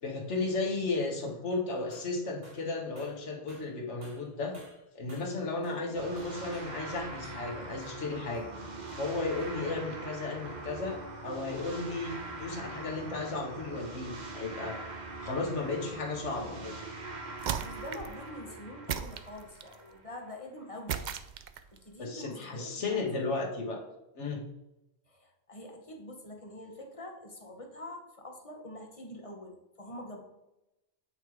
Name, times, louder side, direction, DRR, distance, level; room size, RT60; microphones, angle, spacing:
voice 1, 0.0-4.6 4.9-8.5 9.0-14.8 15.2-16.8 22.0-23.8 24.1-24.4, left 3 dB, 75° left, 1 dB, 1.6 m, -34 dB
sound 1, 1.9-2.2 2.4-2.7 3.0-5.9 6.2-7.5 7.8-7.9 8.3-8.5 8.9-9.0 9.4-9.6, right 1 dB, 85° right, 2.4 m, -57 dB
voice 2, 5.6-6.0 17.6-21.0 21.7-23.0 25.1-30.2, left 1 dB, 30° left, 2 dB, 1.1 m, -45 dB
sound 2, 5.9-20.3, right 3 dB, 40° right, 1.1 m, -43 dB
sound 3, 17.4-18.2 18.9-19.8 20.9-21.8, right 8 dB, 60° right, 0.5 m, -36 dB
8.7 x 3.3 x 4.7 m, 0.95 s
omnidirectional pair, 1.2 m